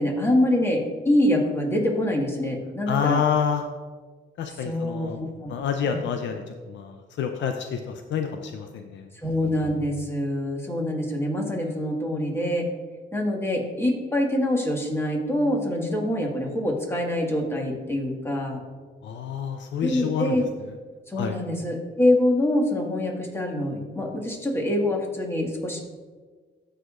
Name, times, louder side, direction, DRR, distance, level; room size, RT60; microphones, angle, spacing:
voice 1, 0.0-3.2 4.6-5.5 5.8-6.0 9.2-12.7 13.1-18.6 19.8-20.4 21.1-25.8, left 1 dB, 10° left, 0 dB, 1.7 m, -25 dB
voice 2, 2.9-3.6 4.4-5.2 5.5-9.1 19.0-20.4 21.2-21.4, left 7 dB, 65° left, 6 dB, 0.6 m, -28 dB
14.0 x 5.0 x 2.5 m, 1.4 s
cardioid pair, 90°, 20 cm